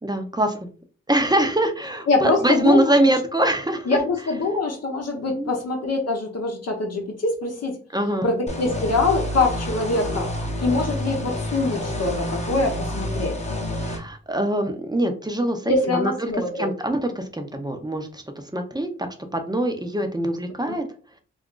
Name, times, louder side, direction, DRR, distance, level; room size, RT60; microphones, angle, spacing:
voice 1, 0.0-0.7 1.1-4.0 5.3-5.5 7.9-8.4 13.8-18.2 18.5-19.1 19.3-20.8, right 1 dB, 15° right, 6 dB, 0.7 m, -23 dB
voice 2, 2.1-3.1 3.9-7.8 8.2-10.3 10.6-13.4 15.7-16.7 20.7-20.8, left 3 dB, 60° left, 2 dB, 0.8 m, -24 dB
sound 1, 8.5-14.0, left 1 dB, 25° left, 0.9 m, -28 dB
2.5 x 2.2 x 3.7 m, 0.40 s
supercardioid pair, 40°, 29 cm